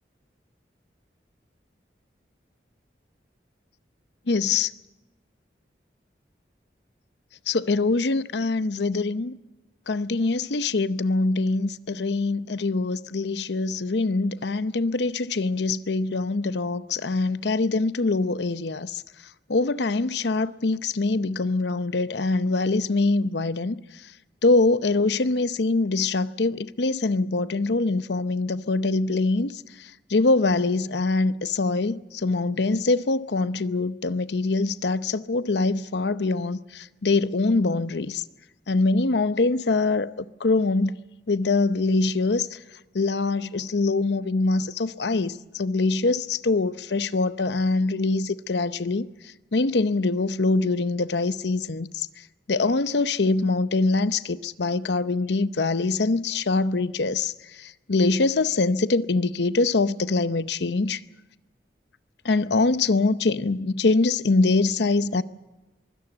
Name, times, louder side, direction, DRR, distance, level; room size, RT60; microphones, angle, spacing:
voice 1, 4.3-4.7 7.5-9.4 9.9-19.0 19.5-23.8 24.4-29.5 30.1-38.2 38.7-40.1 40.4-41.0 41.3-42.5 42.9-49.1 49.5-52.1 52.5-57.3 57.6-61.0 62.2-65.2, left 3 dB, 80° left, 0.7 m, -24 dB
23.5 x 17.0 x 7.9 m
head